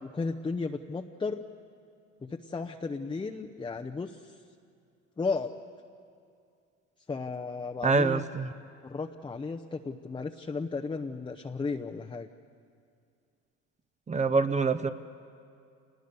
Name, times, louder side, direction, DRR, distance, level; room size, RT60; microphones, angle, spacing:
voice 1, 0.0-1.4 2.2-4.4 5.2-5.5 7.1-8.2 8.8-12.3, left 4 dB, 15° left, 3 dB, 0.8 m, -34 dB
voice 2, 7.8-8.5 14.1-14.9, right 4 dB, 20° right, 11 dB, 0.8 m, -25 dB
27.0 x 20.0 x 6.9 m, 2.4 s
supercardioid pair, 95°, 33 cm